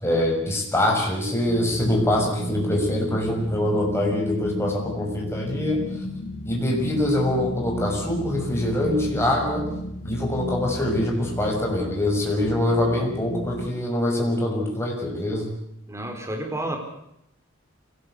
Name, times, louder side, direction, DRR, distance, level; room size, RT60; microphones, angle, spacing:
voice 1, 0.0-5.8 6.4-9.7 10.0-15.5, left 1 dB, 15° left, -1 dB, 6.5 m, -24 dB
sound 1, 1.5-13.7, equal, 85° left, 2.7 m, -34 dB
voice 2, 15.9-16.8, right 1 dB, 15° right, 3 dB, 4.4 m, -30 dB
25.0 x 18.5 x 8.2 m, 0.78 s
head